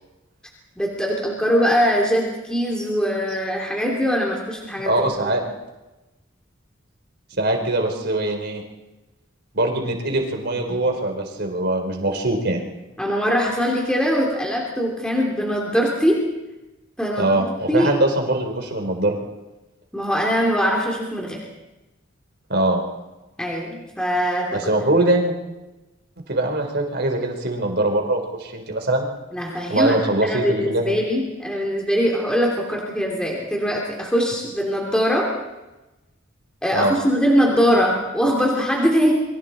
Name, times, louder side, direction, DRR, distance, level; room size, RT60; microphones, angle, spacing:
voice 1, 0.8-5.1 13.0-16.2 17.0-17.9 19.9-21.4 23.4-24.6 29.3-30.0 30.2-35.3 36.6-39.1, equal, 5° left, -2 dB, 3.0 m, -22 dB
voice 2, 4.8-5.4 7.4-8.6 9.5-12.6 17.2-19.2 22.5-22.8 24.5-25.3 26.3-29.1 29.7-30.8 36.7-36.9, right 1 dB, 55° right, 3 dB, 4.2 m, -22 dB
28.5 x 24.0 x 4.3 m, 1.0 s
head